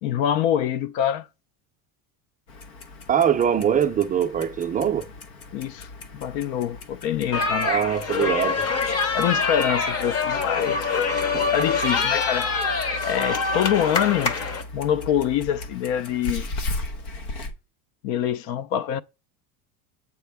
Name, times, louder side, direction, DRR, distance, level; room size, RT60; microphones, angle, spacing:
voice 1, 0.0-1.3 5.5-7.7 9.1-11.1 11.5-12.5 13.0-14.3 14.7-16.5 18.0-19.0, left 10 dB, 55° left, 0.4 m, -25 dB
Clock, 2.5-17.5, left 2 dB, 85° left, 1.2 m, -37 dB
voice 2, 3.1-5.0 7.6-8.6 11.3-11.5, right 8 dB, 20° right, 0.4 m, -22 dB
sound 1, 7.3-14.6, left 4 dB, 35° left, 1.0 m, -25 dB
8.3 x 4.3 x 3.4 m
supercardioid pair, 130°, 43 cm